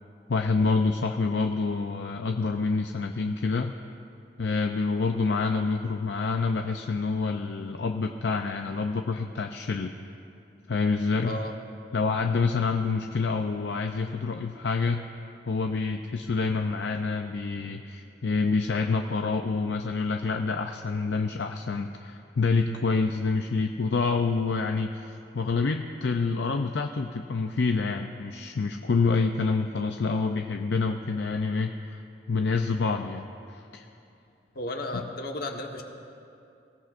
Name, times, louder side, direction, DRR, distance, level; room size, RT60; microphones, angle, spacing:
voice 1, 0.3-3.7 4.4-9.9 10.7-11.3 11.9-15.1 15.5-32.0 32.3-33.9 34.9-35.0, left 4 dB, 75° left, 5 dB, 0.5 m, -27 dB
voice 2, 11.2-11.6 34.5-35.8, left 1 dB, 60° left, 2 dB, 1.3 m, -33 dB
24.0 x 16.5 x 2.6 m, 2.6 s
head